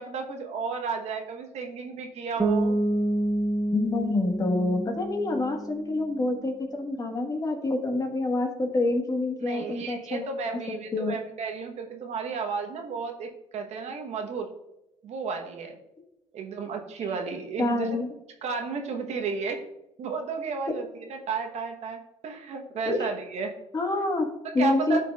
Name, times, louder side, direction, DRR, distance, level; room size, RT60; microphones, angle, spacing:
voice 1, 0.0-2.8 9.4-14.5 15.0-15.7 16.3-18.0 18.4-19.6 20.0-23.5 24.4-25.0, right 5 dB, 60° right, 4 dB, 1.1 m, -33 dB
Bass guitar, 2.4-6.1, right 1 dB, 15° right, 0.9 m, -28 dB
voice 2, 3.7-10.6 10.9-11.2 17.6-18.1 22.8-23.0 23.7-24.3 24.5-25.0, left 2 dB, 30° left, 3 dB, 1.4 m, -27 dB
12.0 x 4.5 x 2.4 m, 0.91 s
cardioid pair, 95°, 13 cm